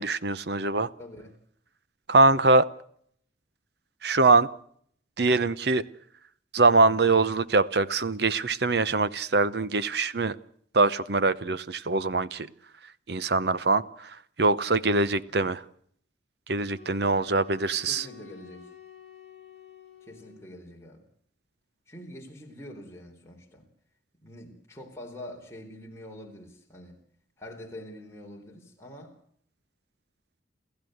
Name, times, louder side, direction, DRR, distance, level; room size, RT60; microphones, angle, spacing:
voice 1, 0.0-0.9 2.1-2.7 4.0-4.5 5.2-5.9 6.5-10.4 10.7-12.5 13.1-15.6 16.5-18.1, right 3 dB, 60° right, 0.8 m, -23 dB
voice 2, 1.0-1.4 14.5-14.7 15.3-15.5 17.9-18.7 20.0-21.0 21.9-23.7 24.2-27.0 27.4-29.1, left 1 dB, 15° left, 4.1 m, -45 dB
sound 1, 16.7-20.6, left 8 dB, 35° left, 5.4 m, -49 dB
28.5 x 15.0 x 7.9 m
head